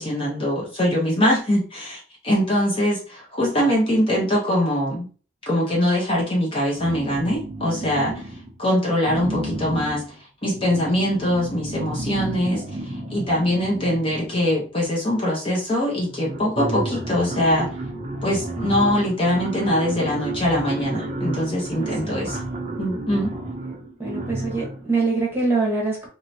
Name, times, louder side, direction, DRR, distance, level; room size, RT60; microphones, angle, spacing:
voice 1, 0.0-5.1 5.5-8.3 8.6-10.0 10.4-17.7 18.2-22.4 22.8-23.3, left 1 dB, 25° left, -4 dB, 0.8 m, -22 dB
sound 1, 6.8-8.6 9.0-14.7 15.6-15.7 16.0-24.9, right 2 dB, 35° right, 0.5 m, -32 dB
voice 2, 7.8-8.2 21.8-22.3 24.0-26.1, right 3 dB, 10° right, -4 dB, 1.1 m, -25 dB
3.1 x 2.8 x 2.7 m, 0.38 s
head